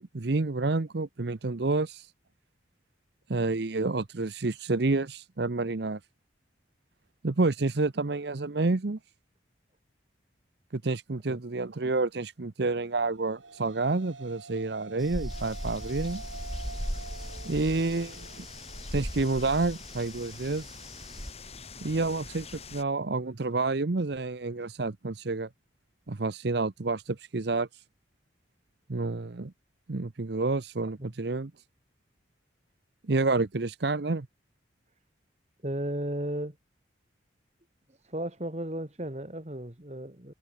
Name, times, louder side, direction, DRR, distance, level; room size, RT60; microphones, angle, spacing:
voice 1, 0.0-2.1 3.3-6.0 7.2-9.0 10.7-16.2 17.4-18.5 18.9-20.8 21.8-25.5 26.1-27.8 28.9-29.5 29.9-31.5 33.1-34.3, right 3 dB, 60° right, 0.8 m, -29 dB
sound 1, 13.0-21.6, right 3 dB, 80° right, 3.0 m, -48 dB
sound 2, 15.0-21.3, equal, ahead, 1.2 m, -39 dB
sound 3, 15.3-22.8, left 4 dB, 30° left, 5.7 m, -46 dB
voice 2, 35.6-36.6 38.1-40.3, right 1 dB, 35° right, 2.4 m, -34 dB
head